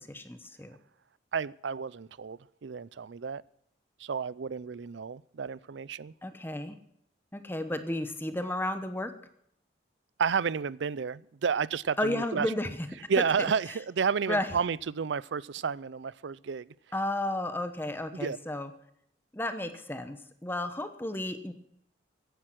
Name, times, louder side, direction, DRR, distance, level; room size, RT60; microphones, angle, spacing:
voice 1, 0.1-0.8 6.2-6.8 7.3-9.1 12.0-12.8 13.2-13.3 14.3-14.5 16.9-18.7 19.3-20.2 20.4-21.5, left 1 dB, 10° left, 10 dB, 1.0 m, -32 dB
voice 2, 1.3-3.4 4.0-6.1 10.2-12.5 13.1-16.7 18.1-18.4, right 6 dB, 70° right, 21 dB, 0.5 m, -31 dB
15.5 x 10.5 x 6.2 m, 0.71 s
head